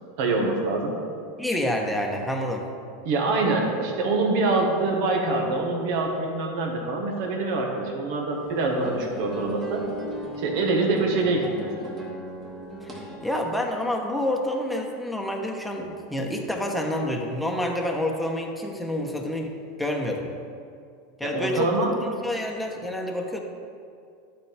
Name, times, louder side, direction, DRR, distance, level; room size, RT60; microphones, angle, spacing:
voice 1, 0.2-1.0 3.0-9.8 10.4-11.9 21.2-21.9, right 2 dB, 60° right, 1 dB, 1.5 m, -25 dB
voice 2, 1.4-2.7 12.8-20.3 21.2-21.7 22.0-23.4, left 1 dB, 5° left, 0 dB, 1.1 m, -28 dB
sound 1, 8.3-13.3, right 1 dB, 30° right, 1.8 m, -37 dB
11.5 x 4.5 x 3.5 m, 2.4 s
hypercardioid pair, 95°, 0 cm